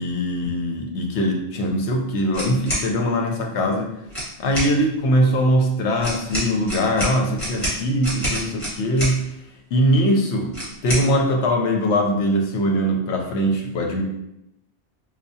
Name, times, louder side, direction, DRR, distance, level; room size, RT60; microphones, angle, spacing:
voice 1, 0.0-3.9 4.4-9.2 9.7-10.5 10.8-14.0, equal, 75° left, 2 dB, 1.0 m, -21 dB
sound 1, 2.3-2.9 4.1-4.7 6.0-9.2 10.5-11.1, right 1 dB, 30° left, 1.5 m, -27 dB
4.5 x 2.3 x 2.7 m, 0.82 s
omnidirectional pair, 1.2 m